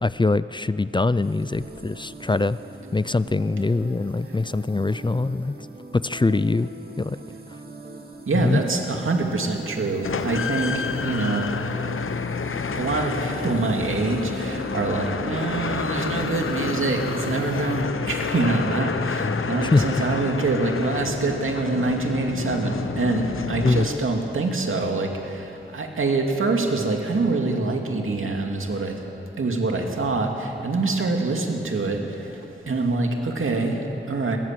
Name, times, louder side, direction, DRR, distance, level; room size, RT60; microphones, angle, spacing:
voice 1, 0.0-2.6 2.9-5.5 6.0-6.7 7.0-7.2 8.4-8.6 19.0-19.4 19.7-20.1 23.6-23.9, left 3 dB, 25° left, 15 dB, 0.5 m, -23 dB
sound 1, 1.2-17.8, right 2 dB, 50° right, 2.7 m, -40 dB
voice 2, 8.3-11.5 12.1-12.2 12.7-29.0 29.4-34.4, right 3 dB, 90° right, 2 dB, 2.4 m, -25 dB
sound 2, 10.0-24.3, left 5 dB, 85° left, 0.8 m, -29 dB
22.0 x 21.0 x 7.7 m, 3.0 s
wide cardioid pair, 80°, 20 cm